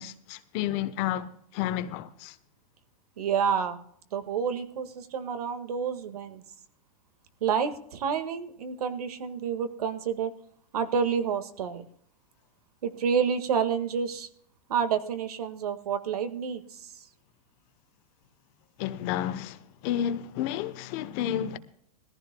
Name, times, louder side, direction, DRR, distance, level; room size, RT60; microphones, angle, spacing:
voice 1, 0.0-2.3 18.8-21.6, left 11 dB, 40° left, 0.9 m, -31 dB
voice 2, 3.2-3.8 4.1-6.4 7.4-10.3 10.7-11.9 12.8-14.3 14.7-16.9, right 7 dB, 80° right, 1.7 m, -29 dB
20.0 x 14.5 x 2.2 m
supercardioid pair, 145°, 19 cm